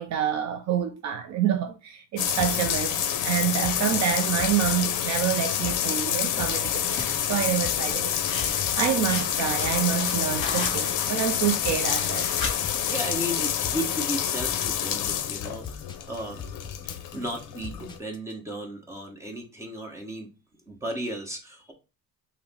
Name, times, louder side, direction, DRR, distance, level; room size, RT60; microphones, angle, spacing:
voice 1, 0.0-8.1 8.5-12.3, right 9 dB, 50° right, 0.4 m, -27 dB
sound 1, 2.2-18.0, left 10 dB, 60° left, 0.6 m, -28 dB
sound 2, 2.4-18.3, left 4 dB, 15° left, 0.4 m, -42 dB
sound 3, 6.8-12.9, left 4 dB, 35° left, 1.8 m, -37 dB
voice 2, 12.9-16.4 17.1-20.3 20.7-21.7, equal, 10° right, 0.9 m, -34 dB
5.5 x 2.1 x 4.0 m
cardioid pair, 165°, 34 cm